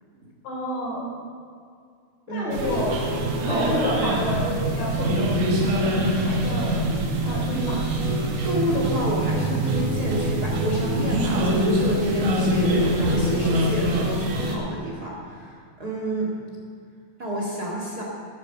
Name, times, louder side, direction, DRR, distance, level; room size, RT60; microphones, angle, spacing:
voice 1, 0.4-1.1 2.3-3.0 3.5-6.8 7.3-7.9, equal, 90° left, -4 dB, 5.5 m, -29 dB
sound 1, 2.5-14.6, right 1 dB, 65° right, 3.1 m, -24 dB
voice 2, 8.4-16.3 17.2-18.0, right 1 dB, 35° right, -3 dB, 2.0 m, -30 dB
13.0 x 9.6 x 7.2 m, 2.2 s
omnidirectional pair, 4.2 m